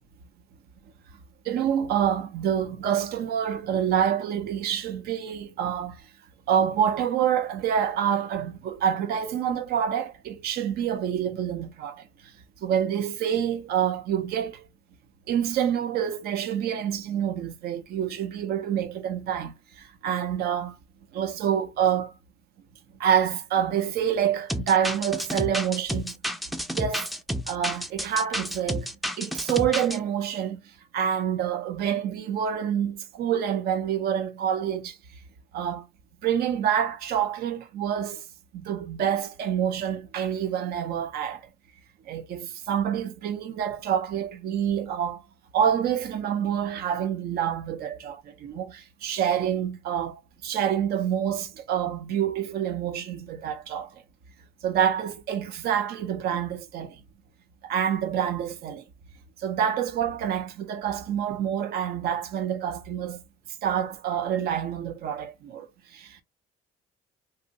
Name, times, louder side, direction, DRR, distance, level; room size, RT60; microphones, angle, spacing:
voice 1, 1.4-6.0 6.5-12.1 12.6-14.6 15.3-20.8 21.1-22.1 23.0-26.1 26.7-27.1 27.5-28.9 29.2-30.6 30.9-35.0 35.5-35.9 36.2-38.3 38.5-41.5 42.1-45.2 45.5-54.0 54.6-57.0 57.6-58.8 59.4-63.2 63.6-66.2, right 9 dB, 70° right, 0.7 m, -27 dB
sound 1, 24.5-30.0, equal, ahead, 0.4 m, -30 dB
2.7 x 2.0 x 3.9 m
cardioid pair, 110°, 17 cm